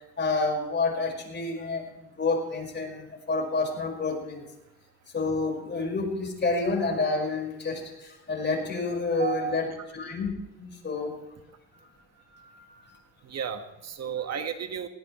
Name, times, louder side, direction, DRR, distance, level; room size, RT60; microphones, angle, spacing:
voice 1, 0.2-1.8 2.2-4.4 5.1-9.7 9.9-10.3 10.6-11.2 11.7-11.8 12.3-12.9, left 3 dB, 35° left, 1 dB, 5.2 m, -29 dB
voice 2, 9.2-9.6 13.2-14.9, right 7 dB, 60° right, 6 dB, 1.6 m, -33 dB
20.0 x 17.5 x 3.2 m, 0.93 s
cardioid pair, 90°, 30 cm